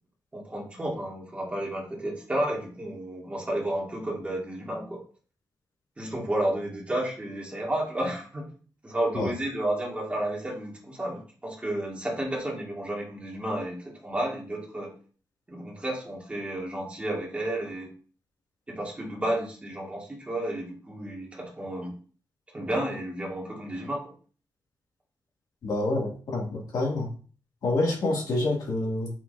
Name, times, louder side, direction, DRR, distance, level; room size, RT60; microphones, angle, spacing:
voice 1, 0.3-5.0 6.0-8.4 8.8-14.9 15.5-17.9 18.7-21.9 22.5-24.1, right 1 dB, 20° right, -2 dB, 2.1 m, -32 dB
voice 2, 25.6-27.1 27.6-29.1, left 2 dB, 70° left, -3 dB, 2.5 m, -27 dB
7.6 x 6.0 x 2.7 m, 0.40 s
wide cardioid pair, 165°, 7 cm